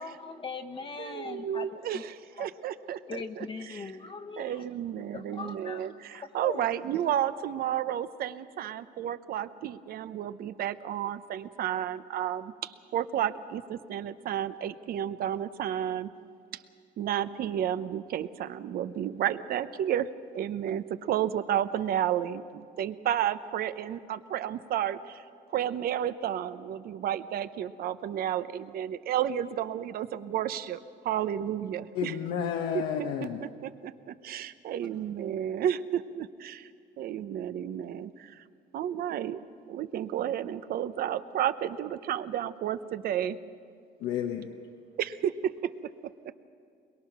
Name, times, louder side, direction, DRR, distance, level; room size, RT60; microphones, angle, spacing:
voice 1, 0.0-1.7 1.9-2.0 2.4-2.5 3.1-4.6 5.1-6.7, left 4 dB, 30° left, 4 dB, 1.1 m, -40 dB
voice 2, 1.0-3.9 4.4-16.1 17.0-25.2 25.5-32.2 32.7-36.7 37.0-38.4 38.7-39.4 39.7-43.4 45.0-45.5, right 10 dB, 65° right, 13 dB, 0.8 m, -32 dB
voice 3, 31.9-33.4 44.0-44.5, left 8 dB, 85° left, 3 dB, 1.3 m, -31 dB
23.0 x 22.0 x 6.1 m, 2.3 s
cardioid pair, 110°, 17 cm